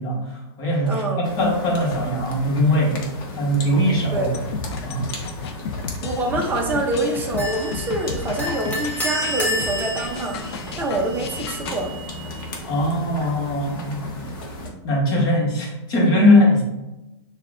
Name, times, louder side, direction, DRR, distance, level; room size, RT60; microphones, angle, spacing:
voice 1, 0.0-3.0 3.4-4.3 4.8-5.1 12.7-14.1 14.8-16.6, left 1 dB, 30° left, -2 dB, 1.2 m, -20 dB
voice 2, 0.8-1.2 4.1-4.3 6.0-10.4 10.8-11.9, right 2 dB, 15° right, 0 dB, 0.6 m, -25 dB
sound 1, 1.2-14.7, left 2 dB, 50° left, 1.0 m, -36 dB
sound 2, 4.3-11.8, left 5 dB, 70° left, 0.6 m, -33 dB
sound 3, 7.4-13.3, equal, 10° left, 0.9 m, -31 dB
6.7 x 2.4 x 2.4 m, 0.99 s
hypercardioid pair, 150°, 14 cm